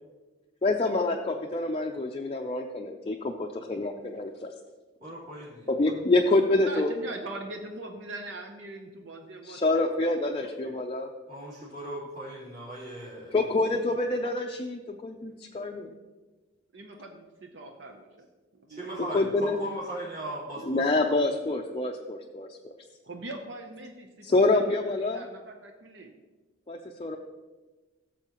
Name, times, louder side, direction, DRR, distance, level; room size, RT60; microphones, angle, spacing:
voice 1, 0.6-4.5 5.7-6.9 9.4-11.1 13.3-15.9 19.1-19.5 20.7-22.5 24.2-25.2 26.7-27.2, left 2 dB, 30° left, 2 dB, 0.5 m, -26 dB
voice 2, 5.0-6.1 11.3-13.9 18.7-21.3, right 1 dB, 40° right, -10 dB, 3.3 m, -39 dB
voice 3, 6.6-9.9 10.4-10.8 16.7-18.3 18.6-19.3 23.0-24.8 25.0-26.1, right 2 dB, 65° right, 4 dB, 0.7 m, -42 dB
14.5 x 7.0 x 3.0 m, 1.2 s
head